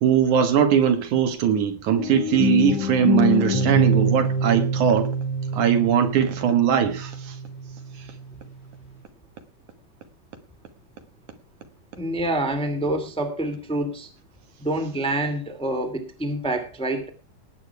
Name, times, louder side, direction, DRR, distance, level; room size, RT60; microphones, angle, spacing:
voice 1, 0.0-5.1 5.5-7.3, right 8 dB, 70° right, 2.8 m, -20 dB
sound 1, 2.0-7.8, equal, 70° left, 5.6 m, -25 dB
voice 2, 12.0-14.1 14.6-17.1, right 1 dB, ahead, 1.8 m, -27 dB
19.0 x 8.9 x 4.7 m
omnidirectional pair, 3.7 m